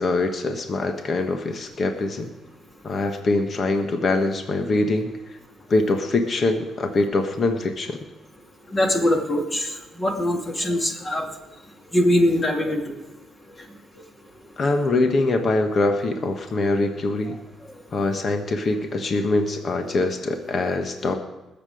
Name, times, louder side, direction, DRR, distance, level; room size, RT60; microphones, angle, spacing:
voice 1, 0.0-2.3 2.8-5.1 5.7-8.0 14.6-17.4 17.9-21.1, left 2 dB, 45° left, 5 dB, 1.4 m, -23 dB
voice 2, 8.7-11.3 11.9-12.9 17.3-17.4, left 1 dB, 25° left, 2 dB, 2.5 m, -22 dB
20.5 x 7.6 x 5.0 m, 1.0 s
cardioid pair, 90°, 0 cm